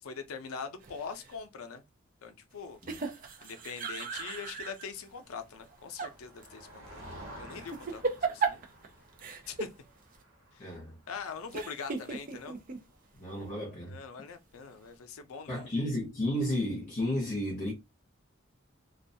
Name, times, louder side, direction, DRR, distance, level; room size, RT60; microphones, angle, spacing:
voice 1, 0.0-1.8 2.2-2.8 3.4-7.0 7.4-8.6 9.5-9.7 10.5-10.7 11.1-12.6 13.8-15.9, left 5 dB, 90° left, 0.5 m, -42 dB
sound 1, 0.8-1.4 2.8-4.9 5.6-6.1 6.4-6.5 7.6-8.9 9.2-9.7 10.1-10.2 11.5-12.8, right 4 dB, 40° right, 0.4 m, -35 dB
Motor vehicle (road), 5.1-12.9, right 1 dB, 75° right, 1.1 m, -52 dB
voice 2, 10.6-10.9 13.1-14.0 15.5-17.7, left 1 dB, 40° left, 0.8 m, -33 dB
2.3 x 2.2 x 2.6 m
head